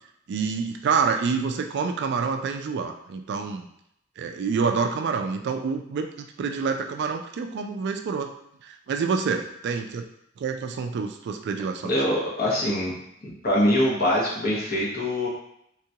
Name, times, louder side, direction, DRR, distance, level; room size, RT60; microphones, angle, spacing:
voice 1, 0.3-3.7 4.2-8.3 8.6-10.0 10.4-11.9, right 5 dB, 55° right, 6 dB, 0.3 m, -27 dB
voice 2, 11.9-12.9 13.2-15.3, left 1 dB, 50° left, -4 dB, 1.0 m, -23 dB
3.7 x 2.3 x 2.7 m, 0.75 s
head